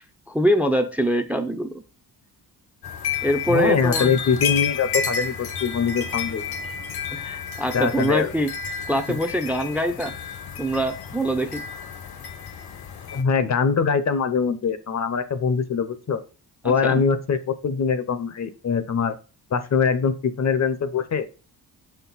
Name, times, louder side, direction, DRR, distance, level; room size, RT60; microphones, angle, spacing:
voice 1, 0.0-1.8 3.2-4.1 7.1-8.5 8.9-10.1 10.6-11.6 16.6-17.0, equal, 5° right, 9 dB, 0.5 m, -24 dB
sound 1, 2.8-13.2, left 6 dB, 70° left, 1.0 m, -31 dB
voice 2, 3.5-6.4 7.7-8.3 9.1-9.2 13.1-16.2 16.6-19.2 19.5-21.3, left 6 dB, 45° left, 12 dB, 0.7 m, -23 dB
6.5 x 4.4 x 4.0 m, 0.34 s
cardioid pair, 115°, 39 cm